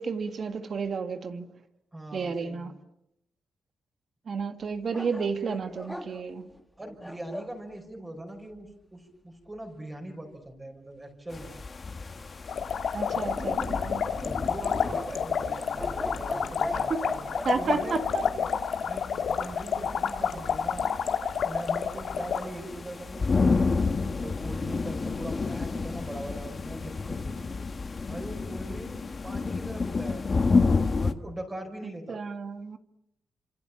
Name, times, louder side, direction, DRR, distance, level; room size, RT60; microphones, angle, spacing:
voice 1, 0.0-1.5 2.1-2.7 4.3-6.5 12.9-14.1 16.9-17.0 17.4-18.2 32.1-32.8, right 5 dB, 45° right, 2.0 m, -31 dB
voice 2, 1.9-2.7 6.8-11.5 14.2-17.2 17.5-18.0 18.8-20.9 21.4-23.6 24.2-27.7 28.1-30.2 31.0-32.2, right 1 dB, 15° right, 5.3 m, -41 dB
sound 1, 4.9-7.6 12.9-13.8 14.8-17.6, equal, 5° left, 1.5 m, -40 dB
sound 2, 11.3-31.1, left 4 dB, 30° left, 1.6 m, -31 dB
sound 3, 12.5-22.4, left 7 dB, 65° left, 2.3 m, -29 dB
29.0 x 26.5 x 7.4 m
cardioid pair, 130°, 0 cm